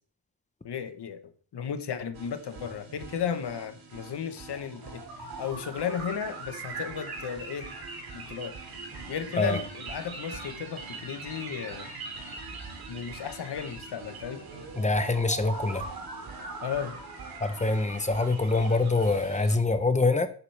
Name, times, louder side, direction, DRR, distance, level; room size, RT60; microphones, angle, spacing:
voice 1, 0.6-5.0 5.4-7.8 8.1-8.6 9.1-11.9 12.9-14.5 16.6-17.0, left 8 dB, 80° left, 9 dB, 1.1 m, -34 dB
sound 1, 2.1-19.6, right 3 dB, 65° right, 2.5 m, -41 dB
voice 2, 14.8-15.8 17.4-20.3, left 3 dB, 20° left, 9 dB, 0.8 m, -25 dB
10.5 x 8.4 x 3.3 m, 0.43 s
wide cardioid pair, 140°, 40 cm